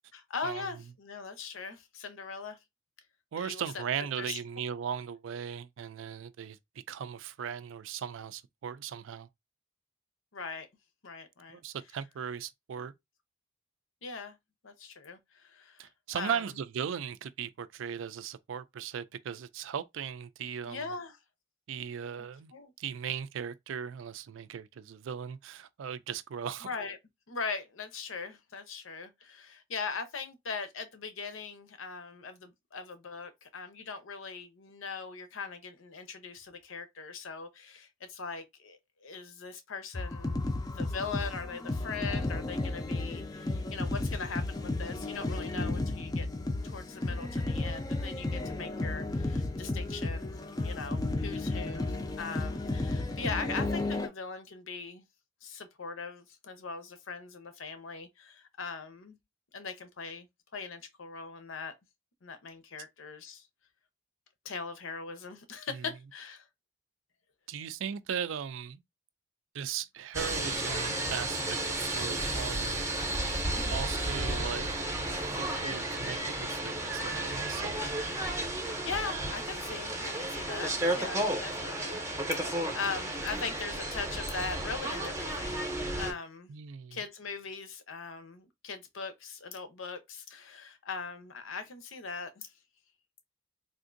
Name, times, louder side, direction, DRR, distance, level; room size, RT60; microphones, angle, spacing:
voice 1, 0.1-2.6 3.4-3.8 4.2-4.4 10.3-10.7 11.0-11.6 14.0-14.4 14.6-16.4 20.7-21.2 22.2-22.3 22.5-22.7 26.6-27.0 27.3-46.3 46.6-55.0 55.4-59.2 59.5-60.3 60.5-61.7 62.2-63.5 64.4-66.4 73.5-73.8 78.8-85.7 85.9-86.5 86.9-92.5, left 4 dB, 85° left, 0.7 m, -40 dB
voice 2, 3.3-6.6 6.9-9.3 11.5-12.9 15.8-20.9 21.7-22.5 22.8-26.7 65.7-65.9 67.5-68.8 69.5-72.9 73.7-74.7 75.6-77.9 86.5-87.0, right 8 dB, 75° right, 0.4 m, -38 dB
sound 1, 39.9-54.1, left 2 dB, 20° left, 0.4 m, -33 dB
sound 2, 70.1-86.1, right 1 dB, 15° right, 0.7 m, -33 dB
3.5 x 2.5 x 2.5 m
head